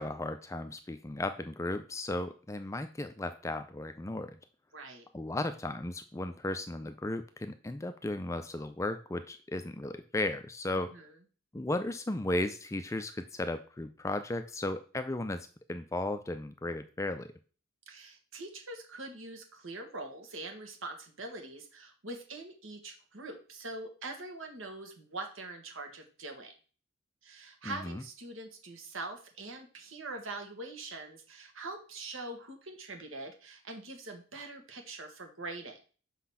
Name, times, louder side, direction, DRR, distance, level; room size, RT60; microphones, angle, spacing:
voice 1, 0.0-4.4 5.1-10.9 11.5-17.3 27.6-28.0, left 2 dB, 15° left, 10 dB, 0.4 m, -35 dB
voice 2, 4.7-5.1 10.7-11.2 17.9-26.5 27.2-35.8, right 2 dB, 70° right, 4 dB, 1.7 m, -43 dB
6.2 x 4.0 x 5.6 m, 0.38 s
head